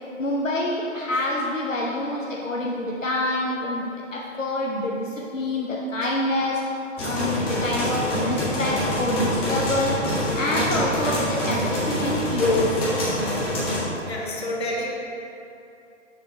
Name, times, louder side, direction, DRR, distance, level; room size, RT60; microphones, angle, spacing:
voice 1, 0.2-6.6 7.0-9.9 10.3-12.9, left 1 dB, 90° left, -4 dB, 0.9 m, -26 dB
sound 1, 7.0-13.8, equal, 15° left, 1.4 m, -25 dB
voice 2, 14.1-14.9, left 1 dB, 55° left, -2 dB, 1.5 m, -29 dB
6.8 x 5.3 x 3.6 m, 2.8 s
figure-of-eight pair, 125°, 37 cm